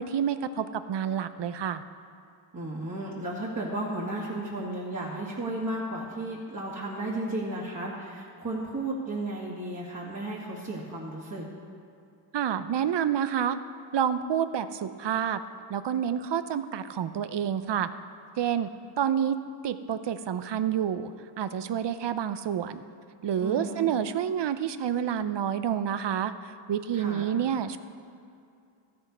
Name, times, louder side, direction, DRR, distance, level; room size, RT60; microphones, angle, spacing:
voice 1, 0.0-1.8 12.3-13.6 13.9-15.4 15.7-17.9 18.4-18.7 19.0-19.4 19.6-21.1 21.4-22.8 23.2-26.3 26.7-27.8, right 9 dB, 55° right, 12 dB, 0.7 m, -28 dB
voice 2, 2.5-11.5 23.4-23.9 26.9-27.3, right 1 dB, 35° right, -6 dB, 2.3 m, -34 dB
13.5 x 7.8 x 5.5 m, 2.5 s
cardioid pair, 65°, 50 cm